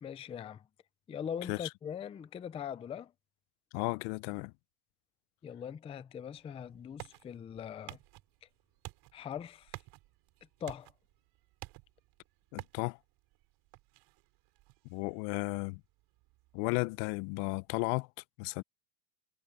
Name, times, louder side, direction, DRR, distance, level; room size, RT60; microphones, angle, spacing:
voice 1, 0.0-0.6 1.1-3.1 5.4-8.0 9.1-9.8 10.6-10.9, left 8 dB, 15° left, 0.4 m, -41 dB
voice 2, 3.7-4.5 12.5-13.0 14.9-15.8 16.5-18.1 18.4-18.6, left 26 dB, 65° left, 0.7 m, -34 dB
sound 1, 6.3-17.7, right 20 dB, 55° right, 6.5 m, -54 dB
supercardioid pair, 135°, 46 cm